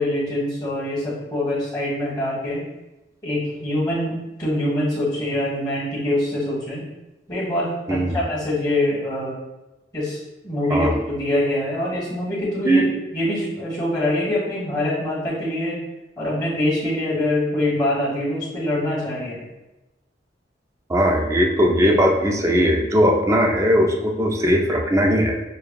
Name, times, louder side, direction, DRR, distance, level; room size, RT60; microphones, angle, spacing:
voice 1, 0.0-2.6 3.2-6.9 7.3-9.4 9.9-10.2 10.4-12.8 13.1-15.8 16.2-19.4, left 1 dB, 20° left, -6 dB, 1.4 m, -24 dB
voice 2, 20.9-25.4, equal, 15° right, 2 dB, 0.4 m, -19 dB
6.6 x 2.2 x 2.3 m, 1.0 s
head